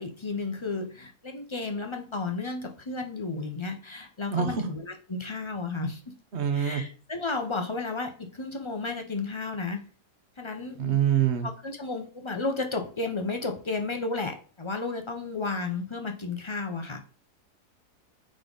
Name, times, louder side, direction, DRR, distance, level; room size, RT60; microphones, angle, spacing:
voice 1, 0.0-6.1 6.5-9.9 10.4-10.8 11.4-17.0, left 3 dB, 30° left, 4 dB, 0.5 m, -33 dB
voice 2, 4.3-4.6 6.3-6.8 10.8-11.5, right 8 dB, 45° right, 6 dB, 1.2 m, -25 dB
8.7 x 3.7 x 4.0 m, 0.40 s
omnidirectional pair, 1.7 m